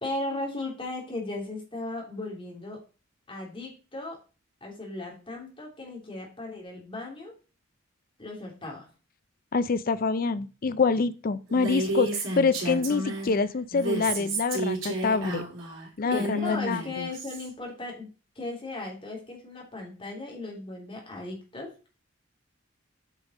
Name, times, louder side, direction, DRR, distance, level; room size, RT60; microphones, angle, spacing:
voice 1, 0.0-2.8 3.3-4.2 4.6-7.3 8.2-8.9 16.0-18.1 18.4-21.7, left 2 dB, 25° left, -1 dB, 2.7 m, -36 dB
voice 2, 9.5-15.4 16.0-17.1, left 4 dB, 45° left, 15 dB, 0.4 m, -26 dB
Female speech woman speaking, 11.5-13.3 13.7-17.5, right 1 dB, 70° right, 3.2 m, -31 dB
8.3 x 5.2 x 4.1 m, 0.35 s
head